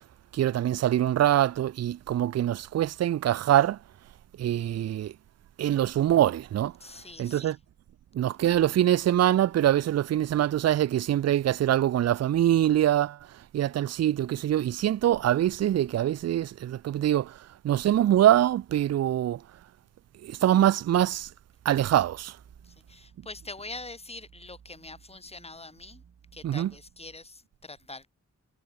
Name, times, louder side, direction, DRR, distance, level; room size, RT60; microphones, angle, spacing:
voice 1, 0.3-3.8 4.4-5.1 5.6-6.7 7.2-7.6 8.2-13.2 13.5-17.3 17.6-19.4 20.4-21.3 21.7-22.3 26.4-26.7, right 12 dB, 60° right, 0.4 m, -24 dB
voice 2, 6.8-7.6 22.6-26.0 26.3-28.1, left 3 dB, 20° left, 2.9 m, -44 dB
sound 1, 21.7-27.2, right 7 dB, 85° right, 4.7 m, -56 dB
wide cardioid pair, 160°, 29 cm